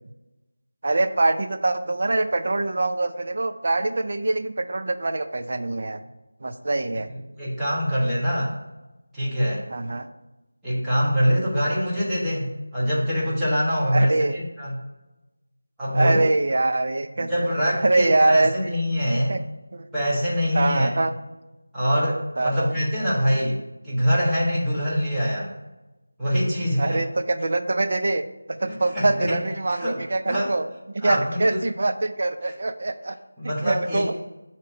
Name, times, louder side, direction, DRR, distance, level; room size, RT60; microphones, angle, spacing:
voice 1, 0.8-6.0 6.4-7.1 9.7-10.1 13.9-14.3 15.9-17.3 17.8-18.7 19.3-19.4 19.7-19.9 20.5-21.1 22.4-22.7 26.8-33.2 33.4-34.2, right 2 dB, 50° right, 8 dB, 0.4 m, -24 dB
voice 2, 7.4-8.6 9.1-9.7 10.6-14.8 15.8-16.2 17.2-19.4 19.9-20.9 21.7-25.5 26.2-27.0 28.6-29.4 29.7-30.0 30.3-30.5 31.0-31.6 32.4-32.5 33.4-34.2, equal, 5° right, -11 dB, 1.3 m, -24 dB
7.4 x 3.0 x 5.7 m, 1.0 s
figure-of-eight pair, 170°, 0 cm